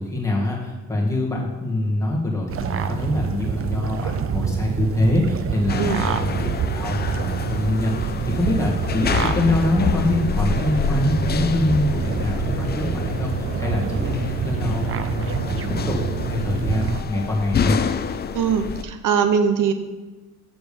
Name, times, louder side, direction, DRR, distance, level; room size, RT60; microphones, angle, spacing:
voice 1, 0.0-17.8, left 1 dB, 10° left, -3 dB, 1.9 m, -24 dB
sound 1, 2.5-17.0, right 7 dB, 45° right, 0.5 m, -27 dB
sound 2, 5.7-18.8, left 6 dB, 30° left, 0.4 m, -28 dB
voice 2, 18.3-19.7, right 7 dB, 75° right, 8 dB, 0.9 m, -21 dB
7.7 x 5.2 x 7.0 m, 1.2 s
cardioid pair, 150°, 32 cm